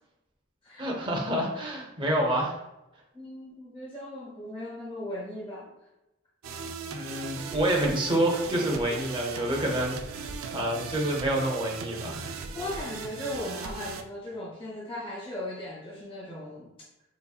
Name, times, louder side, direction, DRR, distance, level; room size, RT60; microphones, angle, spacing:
voice 1, 0.8-2.5 6.9-12.3, right 1 dB, 25° right, -2 dB, 0.7 m, -28 dB
voice 2, 3.1-5.7 12.5-16.7, left 1 dB, 25° left, -4 dB, 0.9 m, -37 dB
sound 1, 6.4-14.0, right 5 dB, 80° right, 0.4 m, -38 dB
4.1 x 3.1 x 2.3 m, 0.95 s
head